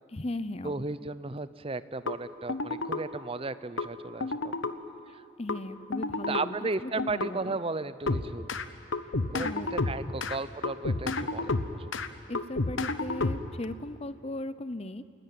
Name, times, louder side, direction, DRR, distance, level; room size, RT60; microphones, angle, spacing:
voice 1, 0.1-0.9 5.4-6.5 6.8-7.6 9.4-9.7 10.0-10.2 12.3-15.0, left 1 dB, 30° left, 15 dB, 0.7 m, -37 dB
voice 2, 0.6-4.5 5.1-5.2 6.3-8.5 9.3-11.9, right 3 dB, 25° right, 15 dB, 0.6 m, -35 dB
sound 1, 2.1-2.2 2.5-3.0 3.8-3.9 4.2-4.7 5.5-5.6 5.9-6.4 7.0-7.3 8.1-8.6 8.9-10.4 10.6-12.1 12.3-13.6, left 3 dB, 70° left, 1.0 m, -30 dB
29.0 x 17.0 x 9.5 m, 2.9 s
head